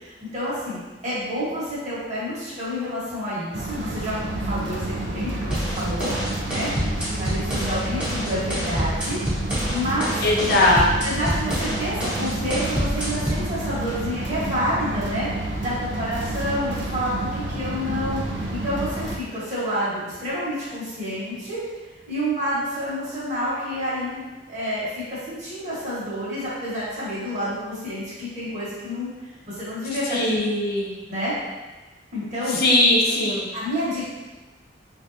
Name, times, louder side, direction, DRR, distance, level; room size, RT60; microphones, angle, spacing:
voice 1, 0.0-4.2 4.4-6.1 6.5-6.7 6.9-9.2 9.5-10.2 11.0-21.6 22.1-29.1 29.5-30.4 31.1-31.3 32.1-32.6 33.5-34.0, equal, 40° right, -9 dB, 1.3 m, -29 dB
sound 1, 3.5-19.2, right 2 dB, 65° right, 0.5 m, -29 dB
sound 2, 5.5-13.5, equal, 5° right, 0.8 m, -28 dB
voice 2, 10.2-10.9 30.1-30.9 32.6-33.4, left 1 dB, 55° left, -3 dB, 0.6 m, -19 dB
3.2 x 2.6 x 2.6 m, 1.2 s
head